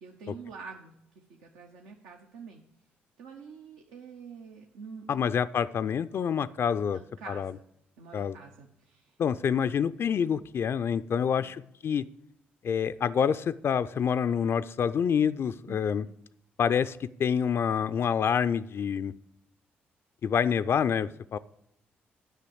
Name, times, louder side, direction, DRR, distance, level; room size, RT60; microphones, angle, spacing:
voice 1, 0.0-2.6 3.2-5.3 6.9-7.6 8.0-9.5 11.2-11.5 15.7-16.2, right 5 dB, 80° right, 2 dB, 0.9 m, -47 dB
voice 2, 5.1-7.0 7.3-7.5 8.1-8.4 9.2-12.0 12.6-16.1 16.6-19.1 20.2-21.4, left 7 dB, 55° left, 13 dB, 0.4 m, -27 dB
9.1 x 5.6 x 7.8 m, 0.74 s
hypercardioid pair, 50°, 5 cm